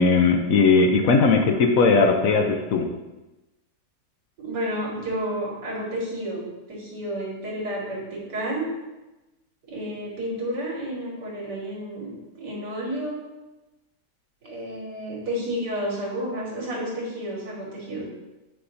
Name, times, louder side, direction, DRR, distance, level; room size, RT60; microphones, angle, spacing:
voice 1, 0.0-2.9, left 4 dB, 65° left, 4 dB, 0.9 m, -18 dB
voice 2, 4.4-8.7 9.7-13.2 14.4-18.0, equal, 75° right, -4 dB, 2.4 m, -31 dB
8.2 x 4.9 x 2.6 m, 1.0 s
omnidirectional pair, 1.8 m